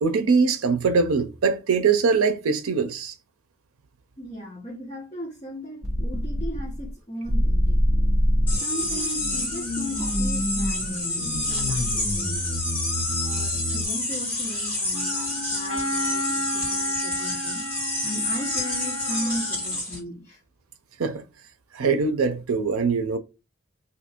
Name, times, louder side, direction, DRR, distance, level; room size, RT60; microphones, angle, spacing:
voice 1, 0.0-3.1 21.0-21.2 21.7-23.2, right 5 dB, 85° right, 0.5 m, -22 dB
voice 2, 4.2-7.8 8.6-12.6 13.2-17.6 18.0-20.4, equal, 25° left, 1.1 m, -37 dB
sound 1, 5.8-6.9 7.3-13.9, equal, 15° right, 0.9 m, -26 dB
sound 2, 8.5-20.0, left 2 dB, 5° left, 1.7 m, -29 dB
Wind instrument woodwind instrument, 14.9-19.7, equal, 75° left, 1.6 m, -33 dB
2.7 x 2.5 x 4.2 m
head